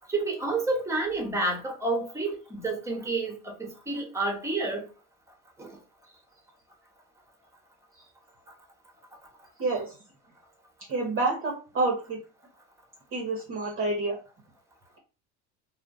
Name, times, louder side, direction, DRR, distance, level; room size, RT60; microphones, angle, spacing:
voice 1, 0.1-4.8 5.6-5.8, right 2 dB, 5° right, 1.0 m, -29 dB
voice 2, 9.6-9.9 10.9-12.2 13.1-14.2, right 3 dB, 30° right, 0.7 m, -28 dB
2.4 x 2.0 x 3.6 m
supercardioid pair, 85°, 44 cm